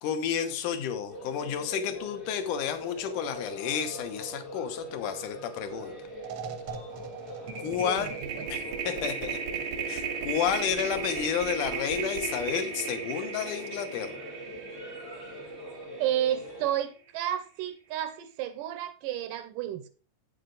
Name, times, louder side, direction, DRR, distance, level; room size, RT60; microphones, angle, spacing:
voice 1, 0.0-5.9 7.6-8.1 8.5-9.4 9.9-14.2, left 8 dB, 70° left, 2.4 m, -31 dB
sound 1, 1.1-16.7, right 1 dB, 45° left, 0.8 m, -42 dB
sound 2, 5.7-5.9 6.2-16.5, right 6 dB, 65° right, 1.4 m, -36 dB
voice 2, 7.8-8.5 16.0-19.9, right 11 dB, 80° right, 2.3 m, -31 dB
8.5 x 7.7 x 3.9 m
omnidirectional pair, 4.0 m